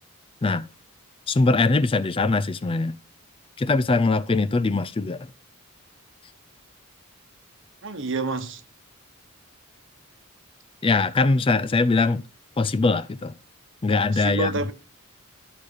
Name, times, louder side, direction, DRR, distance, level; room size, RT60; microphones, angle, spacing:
voice 1, 1.3-3.0 3.6-5.3 10.8-12.2 12.6-13.3 13.8-14.5, left 3 dB, 25° left, 0.4 m, -22 dB
voice 2, 7.8-8.6 14.1-14.7, right 2 dB, 60° right, 1.1 m, -28 dB
12.5 x 6.6 x 4.0 m
head